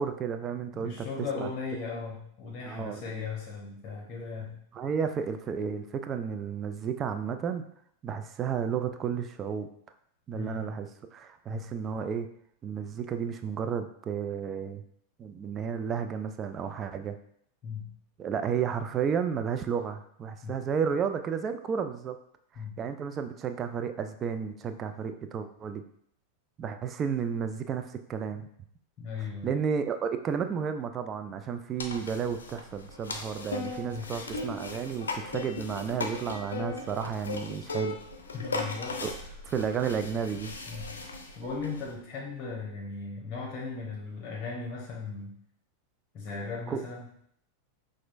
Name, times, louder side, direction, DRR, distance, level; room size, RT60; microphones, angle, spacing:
voice 1, 0.0-1.5 2.7-3.3 4.7-7.7 8.0-9.7 10.3-12.3 12.6-14.8 15.2-17.2 18.2-22.2 22.8-25.8 26.6-28.5 29.4-38.0 39.0-39.1 39.4-40.5 46.7-46.8, right 7 dB, 25° right, 8 dB, 0.3 m, -32 dB
voice 2, 0.7-4.6 10.3-10.7 11.5-11.7 17.6-17.9 20.4-20.6 22.6-22.8 29.0-29.5 33.9-34.2 38.3-39.0 40.7-41.0 41.4-45.3 46.1-47.1, left 4 dB, 30° left, -2 dB, 1.0 m, -37 dB
sound 1, 31.8-41.9, left 3 dB, 70° left, 0.5 m, -38 dB
5.9 x 2.5 x 2.5 m, 0.68 s
figure-of-eight pair, 90°, 0 cm